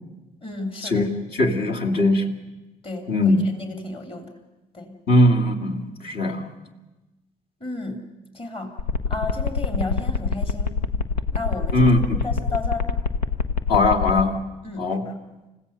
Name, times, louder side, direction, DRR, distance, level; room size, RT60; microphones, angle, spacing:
voice 1, 0.4-1.1 2.8-4.3 4.7-5.0 7.6-8.0 8.3-8.8 9.1-10.8 11.3-11.9 12.2-12.9 14.6-15.1, left 3 dB, 25° left, 5 dB, 3.0 m, -33 dB
voice 2, 1.3-2.3 3.1-3.4 5.1-6.5 11.7-12.0 13.7-14.4 14.8-15.0, left 1 dB, 50° left, 0 dB, 2.5 m, -20 dB
sound 1, 8.8-14.2, left 5 dB, 85° left, 0.8 m, -24 dB
29.0 x 16.0 x 6.8 m, 1.1 s
figure-of-eight pair, 55°, 21 cm